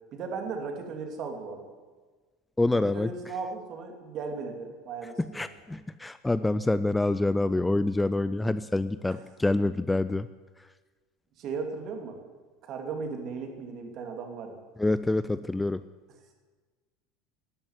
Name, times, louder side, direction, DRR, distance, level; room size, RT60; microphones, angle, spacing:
voice 1, 0.1-1.7 2.7-5.5 11.4-12.2 12.6-14.6, right 4 dB, 45° right, 4 dB, 2.7 m, -36 dB
voice 2, 2.6-3.3 5.2-10.3 10.6-10.7 14.8-15.8, left 2 dB, 10° left, 14 dB, 0.3 m, -27 dB
12.5 x 8.9 x 9.6 m, 1.4 s
supercardioid pair, 130°, 0 cm